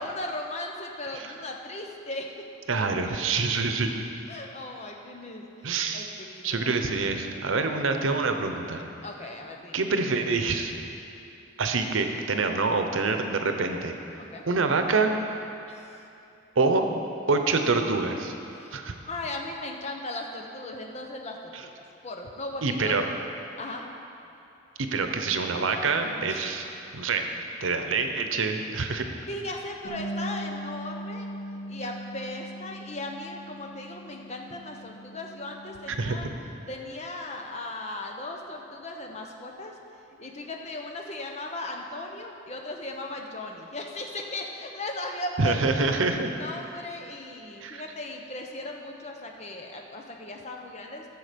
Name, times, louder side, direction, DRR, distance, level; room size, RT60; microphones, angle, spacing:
voice 1, 0.0-2.4 4.3-6.7 9.0-9.8 14.2-14.4 15.7-16.0 18.5-18.7 19.1-23.0 23.6-23.9 26.3-26.7 29.3-31.3 31.7-36.3 36.7-39.7 40.2-45.9 46.4-51.1, left 2 dB, 35° left, 2 dB, 0.9 m, -37 dB
voice 2, 2.7-3.9 5.6-6.1 6.4-8.8 9.7-10.7 11.6-13.9 14.5-15.1 16.6-16.9 17.3-18.3 18.7-18.9 22.6-23.0 24.8-26.7 26.9-29.0 35.9-36.3 45.4-46.3 47.6-47.8, right 4 dB, 90° right, 5 dB, 0.8 m, -26 dB
Bass guitar, 29.8-36.1, equal, 55° left, 2.7 m, -39 dB
13.5 x 7.0 x 5.2 m, 2.8 s
head